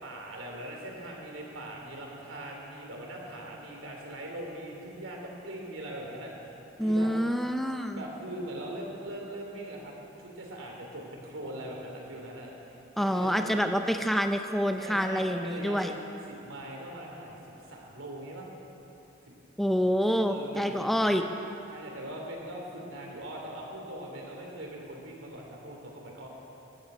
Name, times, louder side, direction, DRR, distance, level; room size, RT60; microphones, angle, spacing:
voice 1, 0.0-6.3 6.8-7.1 7.9-13.6 14.8-16.0 16.3-18.5 19.3-19.4 19.8-19.9 20.2-20.9 21.7-26.3, right 1 dB, 80° right, -1 dB, 3.1 m, -41 dB
voice 2, 6.8-8.0 13.0-15.9 19.6-21.2, equal, ahead, 5 dB, 0.5 m, -27 dB
13.0 x 9.4 x 8.6 m, 3.0 s
head